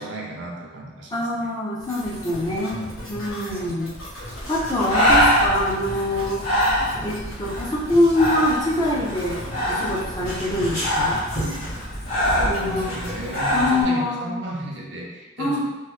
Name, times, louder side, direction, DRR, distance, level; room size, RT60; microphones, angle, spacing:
voice 1, 0.0-1.5 3.5-3.6 12.4-15.6, right 1 dB, 60° right, -1 dB, 0.6 m, -34 dB
voice 2, 1.1-3.9 4.5-6.5 7.0-11.2 12.4-12.9 13.5-14.4 15.4-15.6, left 1 dB, 20° left, -5 dB, 0.5 m, -24 dB
sound 1, 1.8-13.4, left 1 dB, 80° left, 0.8 m, -37 dB
Breathing, 4.3-13.8, equal, 40° left, 1.5 m, -24 dB
3.0 x 2.0 x 3.1 m, 1.1 s
head